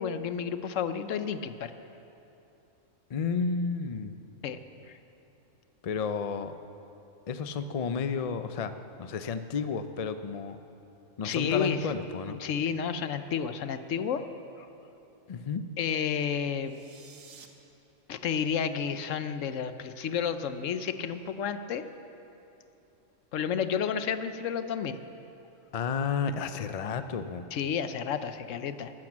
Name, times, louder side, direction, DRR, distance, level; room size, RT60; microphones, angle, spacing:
voice 1, 0.0-1.7 4.4-4.6 11.2-11.8 12.3-14.3 14.6-14.7 15.8-16.8 18.1-21.8 23.3-25.0 27.5-28.9, left 7 dB, 75° left, 11 dB, 1.1 m, -31 dB
voice 2, 3.1-4.2 5.8-6.5 7.3-8.7 9.0-10.6 11.2-12.4 15.3-15.6 25.7-27.5, left 5 dB, 50° left, 10 dB, 0.4 m, -31 dB
sound 1, 16.6-17.5, right 6 dB, 85° right, 1.5 m, -52 dB
13.5 x 12.0 x 7.4 m, 2.9 s
omnidirectional pair, 1.3 m